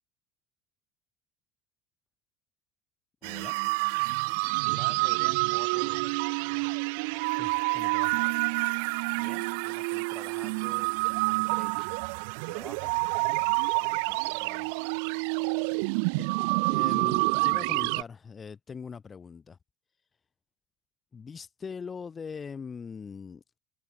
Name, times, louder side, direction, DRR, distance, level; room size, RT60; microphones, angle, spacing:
voice 1, 3.2-3.5 7.4-8.2 16.1-16.3 16.7-19.6 21.1-23.4, left 6 dB, 25° left, 2.9 m, -41 dB
sound 1, 3.2-18.0, right 33 dB, 70° right, 0.8 m, -28 dB
voice 2, 4.7-6.1 8.6-12.0 12.4-13.4 13.8-14.9, right 1 dB, 5° right, 3.6 m, -50 dB
supercardioid pair, 100°, 0 cm